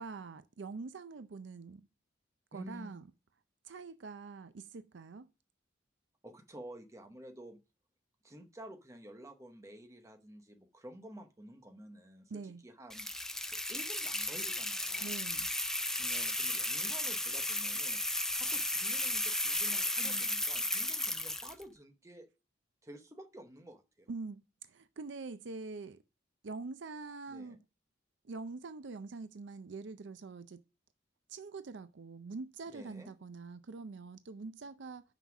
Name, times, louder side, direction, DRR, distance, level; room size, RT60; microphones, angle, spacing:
voice 1, 0.0-1.9 2.5-3.0 3.6-5.3 12.3-12.6 15.0-15.5 20.0-20.2 24.1-26.0 26.4-27.6 28.2-30.6 31.3-35.0, right 4 dB, 65° right, 0.5 m, -44 dB
voice 2, 2.5-3.0 6.2-7.6 8.2-15.1 16.0-18.0 18.3-22.3 22.8-24.1 27.3-27.6 32.7-33.1, right 1 dB, 15° right, 0.9 m, -51 dB
sound 1, 12.9-21.6, left 1 dB, 5° left, 0.3 m, -34 dB
5.9 x 5.7 x 5.9 m
head